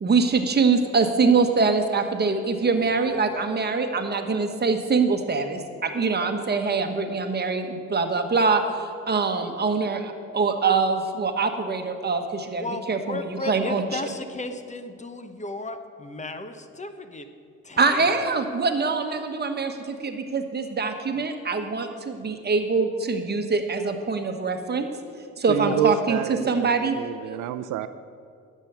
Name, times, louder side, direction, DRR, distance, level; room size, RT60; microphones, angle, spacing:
voice 1, 0.0-14.0 17.8-24.9 25.4-27.0, right 4 dB, 35° right, 6 dB, 1.3 m, -24 dB
voice 2, 12.6-17.3 17.6-18.1 25.6-25.8, left 2 dB, 25° left, 8 dB, 0.9 m, -34 dB
voice 3, 25.5-27.9, right 9 dB, 80° right, 12 dB, 0.6 m, -28 dB
10.5 x 7.6 x 8.1 m, 2.4 s
cardioid pair, 90°, 30 cm